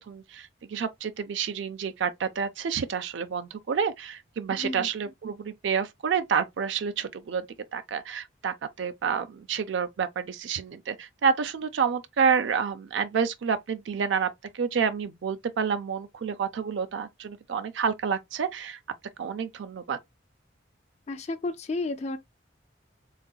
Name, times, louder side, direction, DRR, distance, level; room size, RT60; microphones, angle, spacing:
voice 1, 0.1-7.4 7.7-14.3 14.5-18.8 19.2-20.0, right 6 dB, 75° right, 0.4 m, -29 dB
voice 2, 4.6-4.9 21.1-22.2, left 2 dB, 35° left, 0.4 m, -32 dB
4.0 x 3.7 x 2.3 m
head